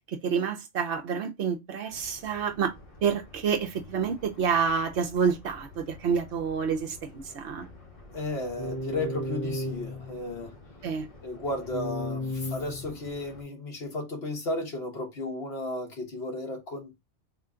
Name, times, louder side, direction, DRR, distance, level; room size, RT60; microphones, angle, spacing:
voice 1, 0.2-2.7 3.0-7.7 10.8-11.1, right 6 dB, 70° right, 1.0 m, -28 dB
sound 1, 1.9-13.4, left 1 dB, 35° left, 0.8 m, -39 dB
voice 2, 8.1-10.5 11.2-16.9, left 2 dB, 60° left, 1.5 m, -34 dB
3.7 x 2.2 x 3.6 m
omnidirectional pair, 1.2 m